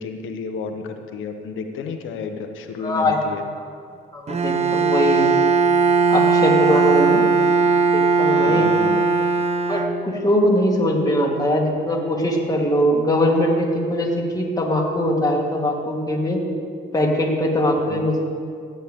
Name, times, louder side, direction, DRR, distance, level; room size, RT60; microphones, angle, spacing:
voice 1, 0.0-3.4 8.4-9.0 17.9-18.0, left 5 dB, 85° left, 6 dB, 1.0 m, -31 dB
voice 2, 2.8-3.2 4.1-5.3 6.1-7.2 7.9-8.7 9.7-14.1 14.3-16.4 16.9-18.2, left 1 dB, 20° left, -1 dB, 2.2 m, -21 dB
Bowed string instrument, 4.3-10.4, right 4 dB, 35° right, 0.7 m, -18 dB
15.5 x 9.2 x 3.7 m, 2.2 s
cardioid pair, 90°, 20 cm